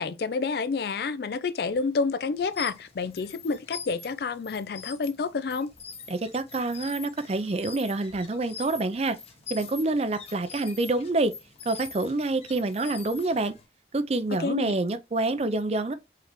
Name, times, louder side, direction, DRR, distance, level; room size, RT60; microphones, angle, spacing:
voice 1, 0.0-5.7 14.4-14.8, left 4 dB, 55° left, 0.4 m, -29 dB
sound 1, 2.4-13.7, left 5 dB, 35° left, 0.9 m, -44 dB
voice 2, 6.1-9.2 9.5-11.3 11.7-13.5 13.9-15.9, right 2 dB, 35° right, 0.5 m, -27 dB
4.7 x 3.3 x 3.0 m
head